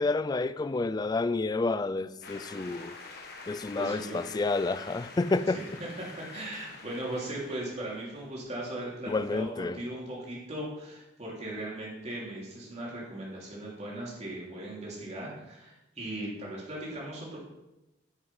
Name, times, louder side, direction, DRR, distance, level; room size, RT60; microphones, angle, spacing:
voice 1, 0.0-3.0 3.5-5.6 9.1-9.8, left 3 dB, 20° left, 0.3 m, -29 dB
sound 1, 2.2-9.0, left 3 dB, 55° left, 1.4 m, -47 dB
voice 2, 3.7-4.2 5.5-17.4, right 1 dB, 35° right, 3.1 m, -38 dB
9.7 x 6.1 x 5.5 m
head